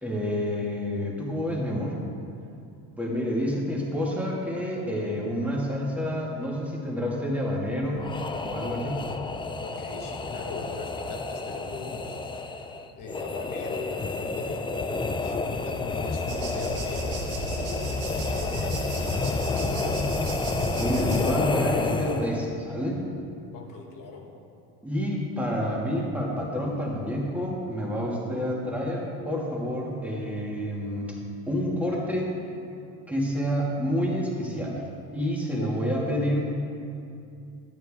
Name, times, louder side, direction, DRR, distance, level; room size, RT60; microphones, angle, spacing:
voice 1, 0.0-1.9 3.0-8.0 8.4-9.1 20.8-23.0 24.8-31.2 31.5-32.3 33.1-34.8 35.1-36.4, equal, 5° right, -4 dB, 2.3 m, -28 dB
sound 1, 8.0-22.5, left 3 dB, 15° left, 0.5 m, -30 dB
voice 2, 9.6-17.2 17.5-18.0 18.3-18.7 19.3-20.2 23.5-24.3 31.9-32.0 35.5-35.7, left 3 dB, 60° left, 0 dB, 1.8 m, -40 dB
sound 2, 16.3-21.3, right 2 dB, 80° right, 2.1 m, -34 dB
11.5 x 9.2 x 3.7 m, 2.5 s
supercardioid pair, 100°, 37 cm